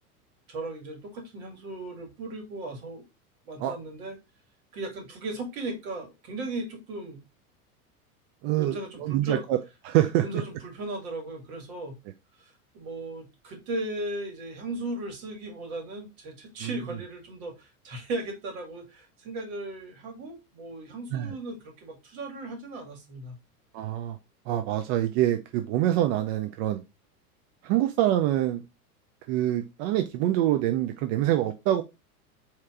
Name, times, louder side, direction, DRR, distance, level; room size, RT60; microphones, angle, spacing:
voice 1, 0.5-3.0 3.5-4.2 4.7-7.2 8.6-9.4 10.2-12.0 12.4-23.4, right 2 dB, 60° right, 1.9 m, -37 dB
voice 2, 8.4-9.6 9.8-10.2 16.6-16.7 21.1-21.4 23.7-24.2 24.5-26.8 27.6-28.6 29.3-31.8, right 13 dB, 45° right, 0.5 m, -25 dB
4.4 x 2.9 x 3.6 m
hypercardioid pair, 95°, 46 cm